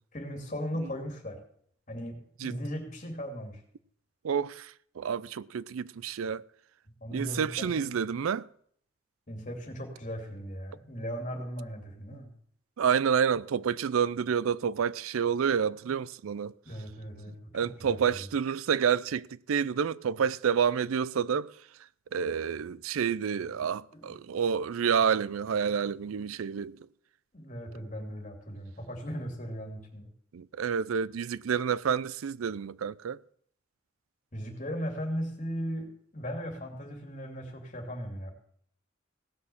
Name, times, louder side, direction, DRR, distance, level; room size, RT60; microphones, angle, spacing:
voice 1, 0.1-1.4 1.9-3.6 7.0-8.0 9.3-12.3 16.6-18.2 23.9-24.2 27.3-30.1 34.3-38.3, equal, 35° left, 2.8 m, -38 dB
voice 2, 4.2-6.4 7.1-8.5 12.1-12.2 12.8-16.5 17.5-21.6 22.1-26.8 30.3-33.2, right 7 dB, 90° right, 0.4 m, -29 dB
17.5 x 6.4 x 7.1 m
head